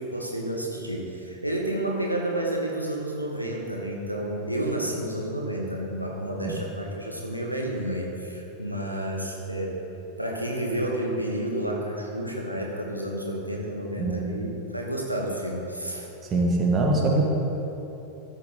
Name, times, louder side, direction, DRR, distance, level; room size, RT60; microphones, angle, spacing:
voice 1, 0.0-9.8 10.2-16.1, right 1 dB, 90° right, -1 dB, 1.1 m, -30 dB
voice 2, 16.2-17.2, right 2 dB, 25° right, -1 dB, 1.8 m, -23 dB
13.5 x 8.2 x 3.9 m, 3.0 s
figure-of-eight pair, 90°, 0 cm